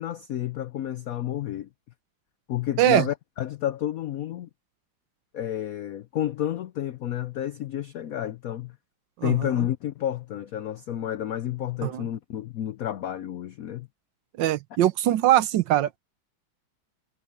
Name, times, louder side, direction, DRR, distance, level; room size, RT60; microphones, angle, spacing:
voice 1, 0.0-1.7 2.5-4.5 5.3-8.7 9.2-13.9, left 11 dB, 80° left, 0.7 m, -30 dB
voice 2, 9.2-9.5 11.8-12.0 14.4-16.0, right 13 dB, 70° right, 1.3 m, -22 dB
omnidirectional pair, 2.2 m